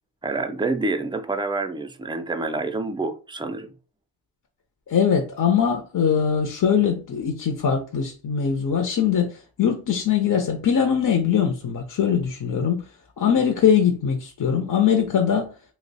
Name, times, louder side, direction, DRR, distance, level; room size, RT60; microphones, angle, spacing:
voice 1, 0.2-3.7, right 3 dB, 10° right, 0.4 m, -27 dB
voice 2, 4.9-12.8 13.2-15.5, left 7 dB, 50° left, 0.6 m, -21 dB
2.9 x 2.1 x 4.0 m
cardioid pair, 75°, 42 cm